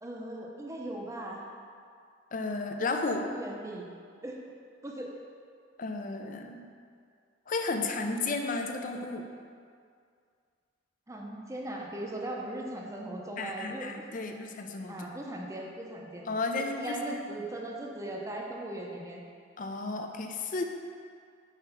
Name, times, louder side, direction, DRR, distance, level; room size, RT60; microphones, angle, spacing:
voice 1, 0.0-1.5 3.1-3.9 4.2-4.4 4.8-5.1 11.1-13.9 14.9-16.3 16.6-19.2, right 1 dB, 15° right, -1 dB, 0.7 m, -38 dB
voice 2, 2.3-3.3 5.8-6.7 7.5-9.3 13.4-15.1 16.3-17.2 19.6-20.6, left 3 dB, 45° left, 4 dB, 0.5 m, -33 dB
5.7 x 4.7 x 5.6 m, 2.2 s
head